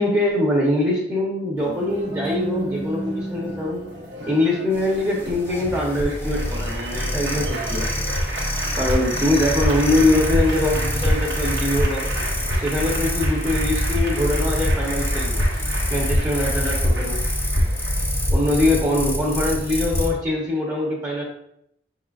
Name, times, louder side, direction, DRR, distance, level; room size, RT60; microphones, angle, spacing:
voice 1, 0.0-3.8 4.3-7.9 8.7-12.0 12.6-15.4 15.9-17.3 18.3-21.2, left 1 dB, 20° right, -3 dB, 0.9 m, -23 dB
Applause, 1.6-18.5, right 1 dB, 75° right, 0.9 m, -33 dB
sound 1, 4.7-20.1, equal, 15° left, 0.7 m, -24 dB
5.4 x 3.8 x 2.4 m, 0.74 s
head